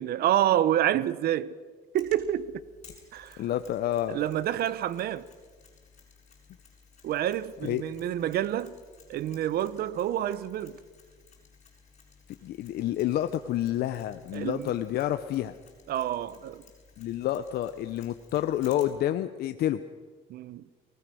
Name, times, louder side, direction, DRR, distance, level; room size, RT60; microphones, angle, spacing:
voice 1, 0.0-1.6 1.9-2.6 3.1-3.4 4.1-5.3 7.0-8.7 9.1-10.8 14.3-14.7 15.9-16.6 20.3-20.6, right 12 dB, 65° right, 1.0 m, -28 dB
Mechanisms, 2.0-19.1, left 5 dB, 40° left, 6.7 m, -57 dB
voice 2, 3.4-4.2 7.6-7.8 12.3-15.5 17.0-19.8, left 12 dB, 70° left, 0.9 m, -29 dB
23.5 x 19.0 x 6.3 m
cardioid pair, 110°, 17 cm